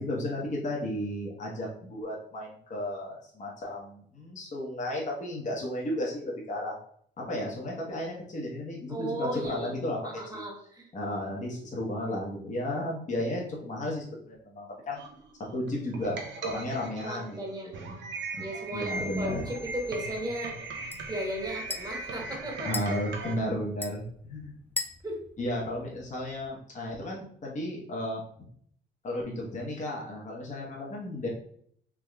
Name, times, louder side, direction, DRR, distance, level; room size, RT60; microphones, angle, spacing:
voice 1, 0.0-6.7 7.3-10.0 10.3-10.4 10.9-15.0 15.5-18.0 18.7-19.5 22.6-24.5 25.4-28.2 29.0-31.3, left 1 dB, 40° left, -3 dB, 1.0 m, -34 dB
voice 2, 8.9-9.7 10.0-10.9 17.0-18.1 18.4-20.6 21.1-22.7 25.0-25.2, right 1 dB, 20° right, 0 dB, 1.1 m, -36 dB
sound 1, 15.0-23.4, right 3 dB, 65° right, 0.6 m, -39 dB
sound 2, 18.7-26.5, left 3 dB, 10° left, 0.4 m, -43 dB
3.5 x 3.0 x 2.3 m, 0.63 s
cardioid pair, 90°, 20 cm